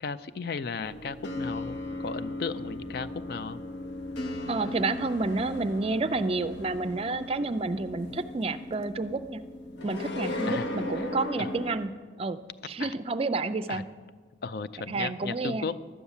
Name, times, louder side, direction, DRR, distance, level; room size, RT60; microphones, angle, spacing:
voice 1, 0.0-3.6 8.1-8.2 10.4-10.7 11.0-11.1 11.4-11.5 12.8-12.9 13.7-13.8 14.4-15.8, left 5 dB, 55° left, 13 dB, 0.4 m, -35 dB
sound 1, 0.8-11.7, left 1 dB, 90° left, 1.0 m, -36 dB
voice 2, 4.5-9.4 9.8-11.9 12.2-12.4 12.7-13.9 14.9-15.7, right 3 dB, 30° right, 13 dB, 0.4 m, -30 dB
12.0 x 8.3 x 7.2 m, 1.4 s
head